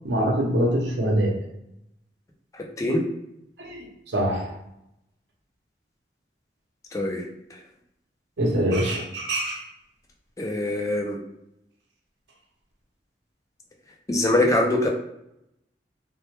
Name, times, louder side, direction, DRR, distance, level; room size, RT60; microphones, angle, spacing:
voice 1, 0.0-1.4 3.6-4.5 8.4-9.6, right 1 dB, 80° right, 0 dB, 0.6 m, -24 dB
voice 2, 2.5-3.0 6.9-7.6 10.4-11.2 14.1-14.9, left 1 dB, 20° left, 1 dB, 0.3 m, -24 dB
2.1 x 2.0 x 2.8 m, 0.82 s
head